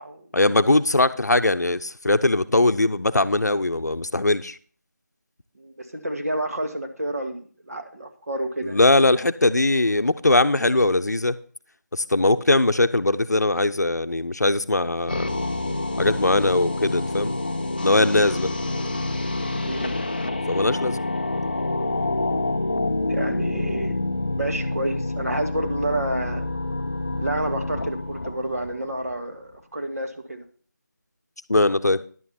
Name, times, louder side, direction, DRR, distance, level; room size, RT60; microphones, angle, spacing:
voice 1, 0.3-4.6 8.6-11.4 11.9-15.3 16.0-17.3 17.8-18.5 20.5-21.0 31.5-32.0, left 2 dB, 65° left, 12 dB, 0.7 m, -20 dB
voice 2, 5.6-8.8 19.6-20.1 23.1-24.0 24.3-26.5 27.2-30.4, right 1 dB, 55° right, 4 dB, 1.8 m, -29 dB
sound 1, 15.1-29.2, left 2 dB, 30° left, 0.5 m, -27 dB
11.0 x 8.6 x 4.4 m, 0.43 s
figure-of-eight pair, 165°, 10 cm